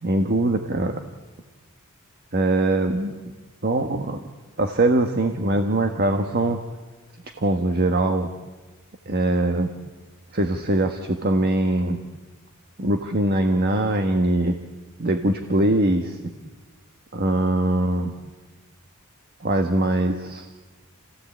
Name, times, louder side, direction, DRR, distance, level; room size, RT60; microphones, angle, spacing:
voice 1, 0.0-1.0 2.3-3.1 3.6-4.3 4.6-6.6 7.4-8.3 9.1-9.7 10.3-12.0 12.8-14.6 15.0-16.2 17.1-18.1 19.4-20.5, right 1 dB, 45° right, 5 dB, 1.4 m, -22 dB
28.5 x 16.0 x 8.6 m, 1.3 s
head